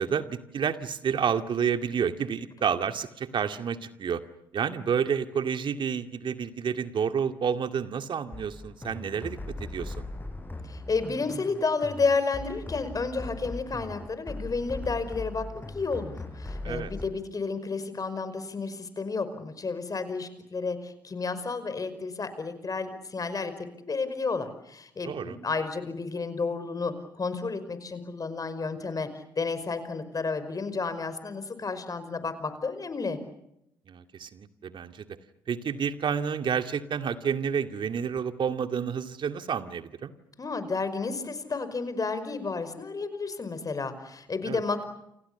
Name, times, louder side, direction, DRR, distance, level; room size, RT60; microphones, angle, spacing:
voice 1, 0.0-4.2 4.5-10.1 16.6-16.9 25.0-25.4 33.9-35.0 35.5-40.1 44.5-44.6, right 7 dB, 50° right, 8 dB, 2.2 m, -30 dB
sound 1, 8.3-17.0, left 2 dB, 20° left, 7.3 m, -39 dB
voice 2, 10.7-15.5 15.7-23.5 23.9-33.2 40.4-44.8, left 4 dB, 35° left, 12 dB, 5.3 m, -31 dB
29.5 x 27.0 x 7.0 m, 0.81 s
hypercardioid pair, 45°, 10 cm